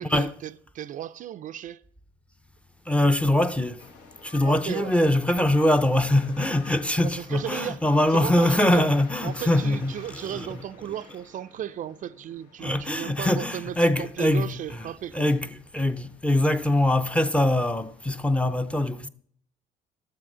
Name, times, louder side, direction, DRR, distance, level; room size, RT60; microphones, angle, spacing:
voice 1, 0.0-1.8 4.4-4.9 7.0-7.8 8.1-8.9 9.2-15.3, right 11 dB, 50° right, 0.4 m, -35 dB
voice 2, 2.9-3.8 4.2-10.6 12.6-19.1, left 1 dB, 5° left, 0.6 m, -23 dB
sound 1, 3.8-18.2, left 5 dB, 90° left, 1.9 m, -51 dB
12.5 x 7.5 x 6.1 m
cardioid pair, 110°, 17 cm